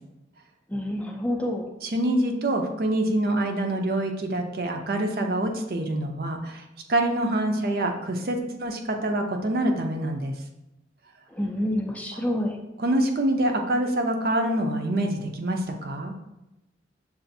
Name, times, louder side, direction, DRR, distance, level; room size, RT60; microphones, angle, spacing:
voice 1, 0.7-1.7 11.3-12.6, left 1 dB, 10° left, 1 dB, 0.4 m, -28 dB
voice 2, 1.8-6.6 6.9-10.3 12.8-16.1, right 1 dB, 55° right, 4 dB, 0.5 m, -26 dB
6.8 x 2.5 x 2.6 m, 0.93 s
head